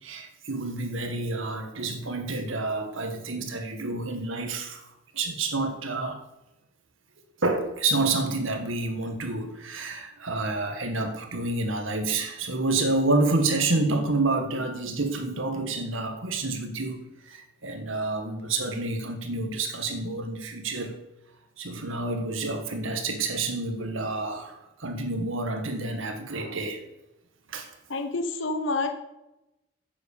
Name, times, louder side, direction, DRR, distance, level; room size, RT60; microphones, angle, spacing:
voice 1, 0.0-4.8 5.1-6.2 7.4-17.0 17.3-20.9 21.6-26.8 27.5-27.7, right 2 dB, 85° right, 6 dB, 1.8 m, -28 dB
voice 2, 27.9-28.9, left 3 dB, 70° left, 7 dB, 1.0 m, -28 dB
10.5 x 8.2 x 6.7 m, 0.95 s
head